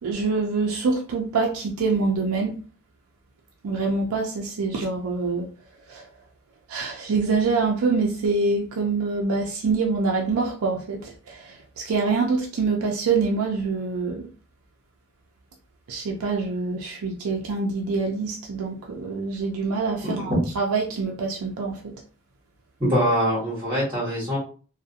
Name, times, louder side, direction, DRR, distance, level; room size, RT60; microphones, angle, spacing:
voice 1, 0.0-2.6 3.6-5.5 5.9-6.1 6.7-14.3 15.9-21.9, right 4 dB, 85° right, 0.4 m, -25 dB
voice 2, 20.0-20.4 22.8-24.4, equal, 20° right, 1.1 m, -23 dB
2.4 x 2.1 x 2.7 m
head